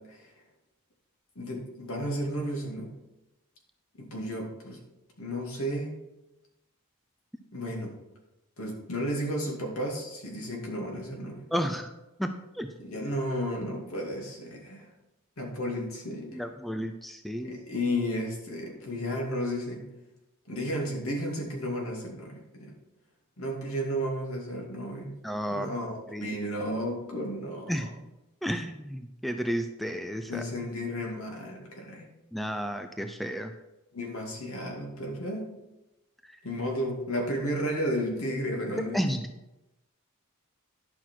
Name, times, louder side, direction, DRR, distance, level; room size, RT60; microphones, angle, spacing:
voice 1, 1.4-2.9 4.0-4.8 5.2-6.0 7.5-8.0 8.6-11.4 12.8-14.9 15.4-16.4 17.4-19.9 20.5-22.7 23.4-25.1 25.5-27.7 30.3-32.1 33.9-35.6 36.4-39.0, equal, 70° left, 0 dB, 2.4 m, -33 dB
voice 2, 11.5-11.9 12.2-12.7 16.3-17.6 25.2-25.7 26.1-26.4 27.7-27.9 28.4-30.4 32.3-33.5 38.9-39.3, equal, ahead, 6 dB, 0.4 m, -32 dB
11.0 x 6.0 x 4.5 m, 0.98 s
head